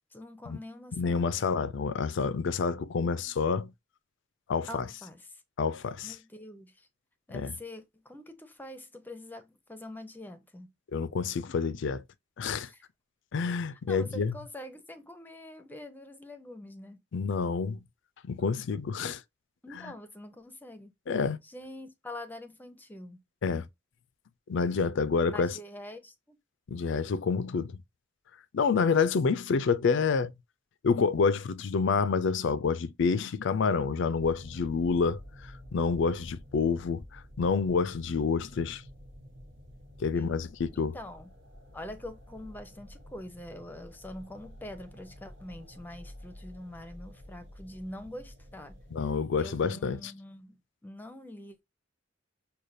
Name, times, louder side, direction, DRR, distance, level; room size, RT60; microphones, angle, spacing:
voice 1, 0.1-1.3 4.7-5.4 6.0-6.9 7.3-10.7 12.7-12.9 13.9-17.0 19.6-20.9 21.4-23.2 25.3-26.4 40.2-40.5 40.8-41.3 41.7-48.8 49.4-51.6, left 1 dB, 10° left, 0.7 m, -45 dB
voice 2, 1.0-3.7 4.5-4.9 5.6-6.1 7.3-7.5 10.9-12.0 12.4-12.7 13.3-14.4 17.1-17.8 18.2-19.2 19.8-19.9 21.1-21.4 23.4-23.7 24.5-25.6 26.7-27.8 28.5-30.3 30.8-38.8 40.0-41.0 48.9-50.1, left 5 dB, 65° left, 0.4 m, -28 dB
sound 1, 34.2-49.1, equal, 75° right, 1.1 m, -50 dB
6.5 x 2.3 x 2.6 m
head